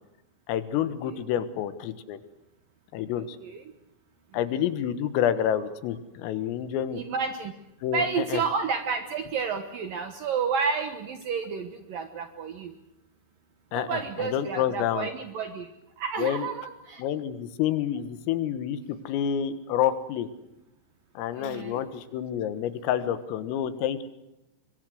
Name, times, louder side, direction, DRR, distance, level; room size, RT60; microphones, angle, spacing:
voice 1, 0.5-2.2 2.9-3.4 4.3-7.0 7.8-8.4 13.7-15.1 16.2-16.5 17.0-20.3 21.2-24.0, left 10 dB, 90° left, 12 dB, 4.1 m, -28 dB
voice 2, 6.9-7.5 7.9-12.7 13.7-15.7 16.0-17.0 21.3-21.8, right 5 dB, 70° right, 8 dB, 2.2 m, -30 dB
25.0 x 22.5 x 6.3 m, 0.92 s
omnidirectional pair, 5.8 m